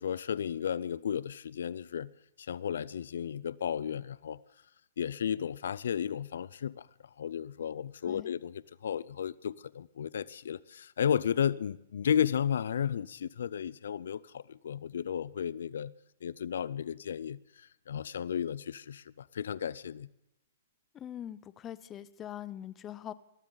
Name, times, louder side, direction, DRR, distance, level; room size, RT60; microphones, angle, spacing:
voice 1, 0.0-2.1 2.4-4.4 5.0-6.9 7.2-15.9 16.2-20.1, left 8 dB, 80° left, 0.5 m, -33 dB
voice 2, 8.0-8.4 20.9-23.1, left 11 dB, 20° left, 0.6 m, -43 dB
21.0 x 16.0 x 4.0 m
hypercardioid pair, 145°, 0 cm